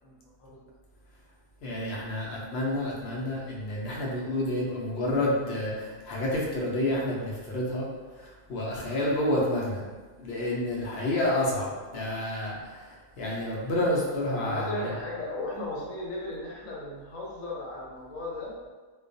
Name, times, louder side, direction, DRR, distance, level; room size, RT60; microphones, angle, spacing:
voice 1, 0.0-0.6 14.4-18.5, left 1 dB, 80° left, -4 dB, 1.1 m, -36 dB
voice 2, 1.6-7.9 8.2-9.8 10.2-14.8, left 1 dB, 65° left, -4 dB, 0.7 m, -29 dB
2.2 x 2.2 x 2.5 m, 1.3 s
omnidirectional pair, 1.4 m